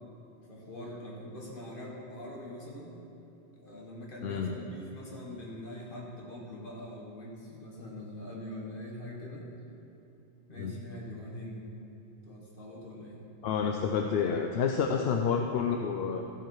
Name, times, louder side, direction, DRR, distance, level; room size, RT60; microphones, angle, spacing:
voice 1, 0.5-2.9 3.6-9.5 10.5-11.6 12.2-13.2 14.8-15.1, left 1 dB, 50° left, -3 dB, 1.9 m, -43 dB
voice 2, 4.2-4.5 10.6-10.7 13.4-16.2, left 6 dB, 65° left, 4 dB, 0.8 m, -29 dB
14.0 x 7.4 x 4.7 m, 2.8 s
omnidirectional pair, 1.2 m